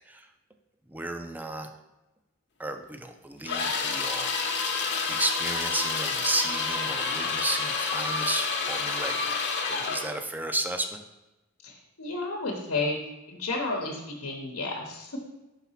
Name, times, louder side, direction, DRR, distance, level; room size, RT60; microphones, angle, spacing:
voice 1, 0.9-1.7 2.6-4.3 5.1-9.4 9.7-11.0, right 2 dB, 10° right, 5 dB, 0.5 m, -33 dB
sound 1, 3.5-10.1, left 4 dB, 55° left, 1.0 m, -29 dB
voice 2, 11.6-13.0 13.3-15.2, left 3 dB, 85° left, 0 dB, 1.1 m, -32 dB
5.8 x 4.1 x 5.7 m, 1.0 s
head